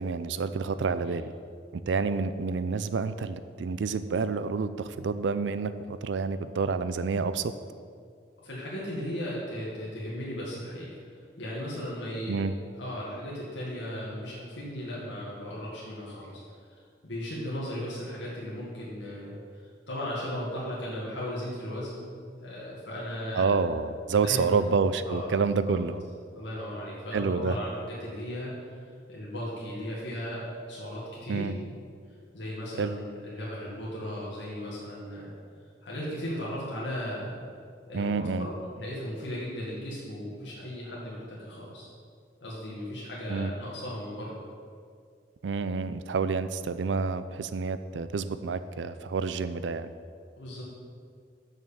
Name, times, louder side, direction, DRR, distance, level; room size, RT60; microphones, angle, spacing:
voice 1, 0.0-1.3 1.7-7.5 12.3-12.5 23.3-26.0 27.1-27.6 31.3-31.5 32.8-32.9 37.9-38.5 43.3-43.5 45.4-49.9, right 4 dB, 75° right, 12 dB, 0.4 m, -28 dB
voice 2, 8.4-11.0 11.4-12.5 12.8-16.4 17.0-19.4 19.9-22.1 22.4-23.5 24.2-24.6 25.0-25.7 26.3-28.8 29.1-31.5 32.3-35.3 35.8-37.4 37.9-41.9 42.4-44.4 50.4-50.6, equal, 80° left, -6 dB, 2.0 m, -36 dB
6.5 x 6.3 x 7.3 m, 2.2 s
head